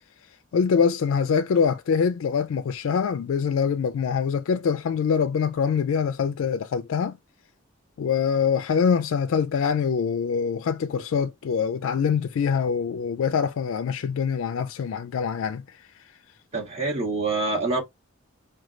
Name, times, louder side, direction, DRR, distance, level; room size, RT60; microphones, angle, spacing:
voice 1, 0.5-7.2 8.0-15.6, left 6 dB, 75° left, 0.3 m, -24 dB
voice 2, 16.5-17.8, right 3 dB, 30° right, 1.8 m, -26 dB
5.0 x 2.3 x 3.1 m
head